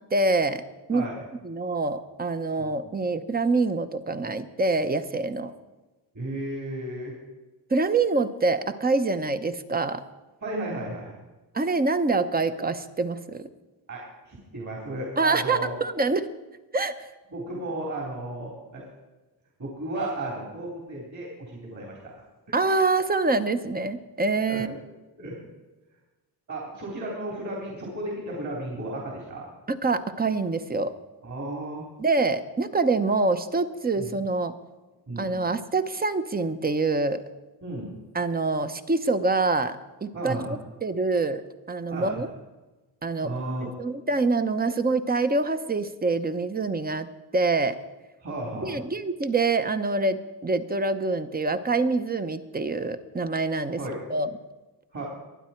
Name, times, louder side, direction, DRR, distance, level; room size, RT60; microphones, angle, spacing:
voice 1, 0.1-0.6 0.9-1.1 1.4-5.5 7.7-10.0 11.5-13.5 15.2-16.3 16.7-17.1 22.5-24.7 29.7-30.9 32.0-34.5 35.2-37.2 38.1-41.4 41.7-42.3 43.0-43.3 43.8-47.1 47.3-47.8 48.6-53.8 54.1-54.3, right 3 dB, 20° right, 10 dB, 0.9 m, -25 dB
voice 2, 0.9-1.2 2.6-2.8 6.1-7.2 10.4-11.2 13.9-15.8 17.3-18.8 19.6-22.0 22.5-22.6 24.5-24.7 25.2-25.4 26.5-29.4 31.2-31.9 34.0-34.1 35.1-35.4 37.6-38.0 40.1-40.5 41.9-42.2 43.2-43.7 48.2-48.8 53.8-54.0 54.9-55.0, right 1 dB, 45° right, -2 dB, 4.0 m, -34 dB
24.0 x 9.8 x 4.5 m, 1.1 s
cardioid pair, 125°, 42 cm